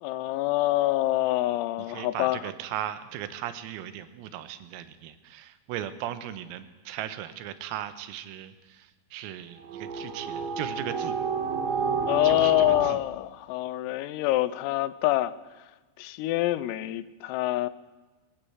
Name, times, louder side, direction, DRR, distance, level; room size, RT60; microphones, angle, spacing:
voice 1, 0.0-2.5 12.1-15.3 16.0-17.7, left 16 dB, 85° left, 16 dB, 3.5 m, -26 dB
voice 2, 1.9-8.9 9.1-11.2 12.2-12.5 12.8-13.0, right 11 dB, 85° right, 12 dB, 3.9 m, -37 dB
sound 1, 9.6-12.9, right 5 dB, 70° right, 2.4 m, -30 dB
21.5 x 16.0 x 8.0 m, 1.2 s
omnidirectional pair, 6.0 m